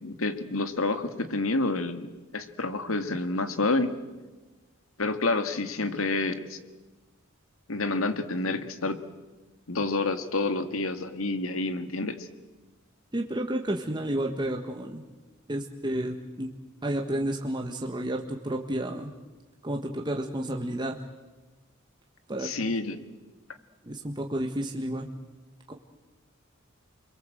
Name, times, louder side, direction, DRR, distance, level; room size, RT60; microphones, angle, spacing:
voice 1, 0.0-4.0 5.0-6.6 7.7-9.0 9.7-12.3 22.4-23.0, left 2 dB, 90° left, 9 dB, 2.0 m, -29 dB
voice 2, 13.1-15.0 15.5-16.5 16.8-19.1 19.6-21.0 22.3-22.5 23.8-25.1 25.7-25.8, right 1 dB, 20° right, 1 dB, 1.5 m, -31 dB
30.0 x 22.5 x 7.9 m, 1.2 s
head